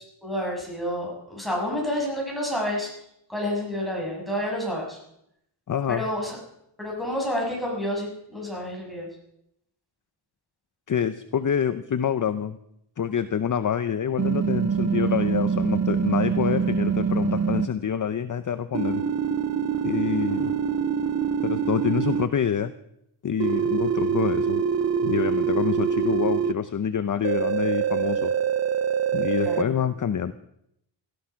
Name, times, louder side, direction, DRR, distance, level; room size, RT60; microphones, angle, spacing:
voice 1, 0.2-2.9 3.3-5.0 5.9-6.4 6.8-9.1 20.3-20.5 29.4-29.7, left 1 dB, ahead, -2 dB, 6.3 m, -29 dB
voice 2, 5.7-6.1 10.9-12.6 13.0-19.0 19.8-20.5 21.4-22.7 23.2-24.6 25.0-28.3 29.1-30.3, left 8 dB, 40° left, 12 dB, 0.7 m, -26 dB
sound 1, 14.2-17.7 18.7-22.3 23.4-26.5 27.2-29.6, right 7 dB, 35° right, 0.6 m, -25 dB
18.0 x 13.5 x 5.8 m, 0.78 s
wide cardioid pair, 145°, 49 cm